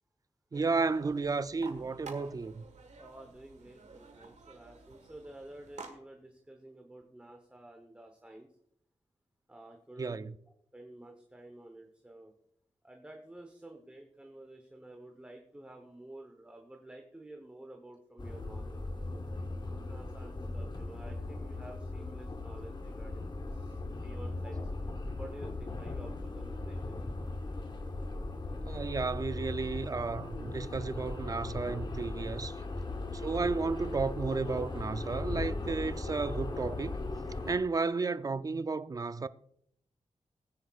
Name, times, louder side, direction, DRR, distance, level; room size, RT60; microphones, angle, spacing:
voice 1, 0.5-2.6 10.0-10.3 28.6-32.5 33.2-37.0 37.5-39.3, right 4 dB, 30° right, 0.4 m, -33 dB
sound 1, 0.5-5.9, right 4 dB, 80° right, 1.5 m, -51 dB
voice 2, 3.0-8.5 9.5-10.2 10.7-12.3 12.8-18.9 19.6-24.6 25.2-27.0 32.9-33.2, right 1 dB, 10° right, 1.0 m, -51 dB
sound 2, 18.2-37.6, left 2 dB, 40° left, 1.0 m, -38 dB
18.0 x 10.0 x 2.4 m
wide cardioid pair, 140°, 12 cm